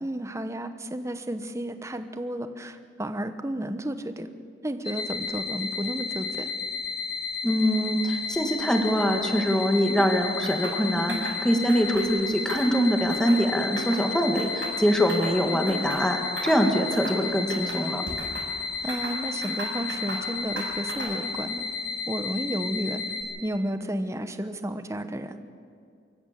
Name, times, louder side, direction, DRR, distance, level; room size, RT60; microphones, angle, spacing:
voice 1, 0.0-4.3 4.6-6.5 11.1-11.3 15.5-15.9 18.8-21.7 22.1-23.0 23.4-25.4, right 1 dB, 15° right, 9 dB, 1.0 m, -32 dB
sound 1, 4.8-23.2, left 4 dB, 25° left, 4.4 m, -33 dB
voice 2, 7.4-18.0, equal, 5° left, 3 dB, 1.8 m, -24 dB
sound 2, 10.4-10.8 11.1-11.4 11.7-12.1 12.4-13.4 13.8-14.1 14.4-15.4 15.7-16.0 16.4-16.6 16.9-17.2 17.5-18.5 18.9-20.3 20.6-21.2, right 3 dB, 70° right, 6.6 m, -37 dB
25.0 x 14.0 x 7.5 m, 2.2 s
head